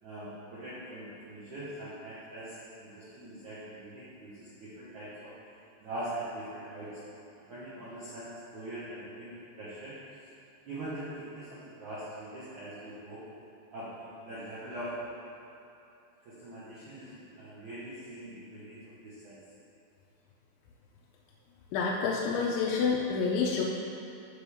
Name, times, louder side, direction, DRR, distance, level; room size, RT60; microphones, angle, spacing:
voice 1, 0.0-5.3 5.8-7.0 7.5-10.0 10.6-13.2 13.7-14.9 16.2-19.4, right 1 dB, 90° right, -10 dB, 1.7 m, -42 dB
voice 2, 21.7-23.6, left 5 dB, 80° left, -3 dB, 2.9 m, -28 dB
13.0 x 5.1 x 3.5 m, 2.7 s
omnidirectional pair, 5.5 m